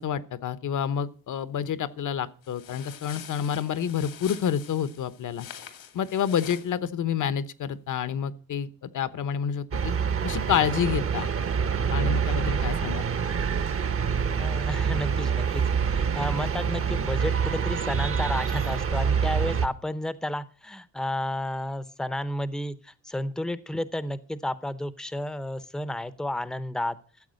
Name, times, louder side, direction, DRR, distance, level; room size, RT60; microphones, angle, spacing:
voice 1, 0.0-5.5 5.9-9.9 10.2-11.3 11.9-13.0, left 8 dB, 60° left, 15 dB, 1.1 m, -28 dB
sound 1, 2.4-6.7, left 9 dB, 80° left, 2.4 m, -45 dB
sound 2, 9.7-19.7, right 6 dB, 40° right, 1.1 m, -26 dB
voice 2, 14.4-27.0, left 1 dB, ahead, 14 dB, 0.8 m, -32 dB
13.5 x 7.8 x 6.4 m, 0.39 s
cardioid pair, 110°, 35 cm